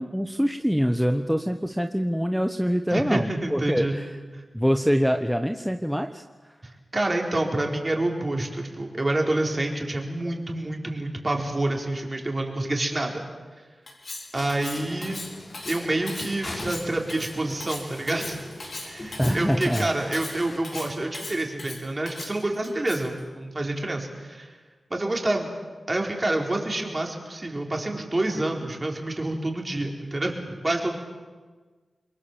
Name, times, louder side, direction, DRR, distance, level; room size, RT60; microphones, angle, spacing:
voice 1, 0.0-4.1 4.5-6.2 19.2-19.9 20.2-20.3, equal, ahead, 6 dB, 1.0 m, -25 dB
voice 2, 2.9-3.9 4.3-4.4 6.9-13.2 14.3-15.2 15.7-18.4 18.8-24.6 24.9-25.5 25.9-31.0, right 2 dB, 30° right, 1 dB, 4.5 m, -28 dB
Cutlery silverware, 13.9-23.2, left 2 dB, 60° left, 5.3 m, -38 dB
sound 1, 14.3-20.6, left 1 dB, 35° left, 4.8 m, -39 dB
27.0 x 22.5 x 7.4 m, 1.4 s
wide cardioid pair, 65°, 0 cm